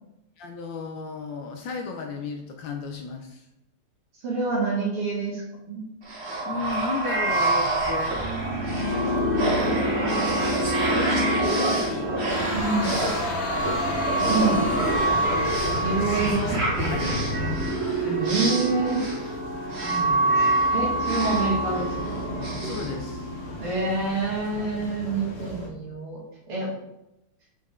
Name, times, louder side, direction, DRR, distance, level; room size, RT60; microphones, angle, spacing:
voice 1, 0.4-3.5 6.4-8.2 8.5-12.1 12.8-13.9 16.0-17.6 22.6-23.3, left 3 dB, 75° left, 4 dB, 1.2 m, -35 dB
voice 2, 4.2-5.8 12.5-13.0 14.3-14.7 15.8-16.6 18.0-19.0 19.8-22.0 23.6-26.2 26.5-26.7, right 3 dB, 80° right, -5 dB, 2.8 m, -27 dB
sound 1, 6.1-23.7, right 1 dB, 40° right, 1.0 m, -26 dB
sound 2, 7.2-25.7, left 1 dB, 50° left, 0.8 m, -41 dB
sound 3, 12.3-17.6, equal, 90° left, 2.0 m, -29 dB
5.4 x 5.0 x 3.5 m, 0.91 s
omnidirectional pair, 2.4 m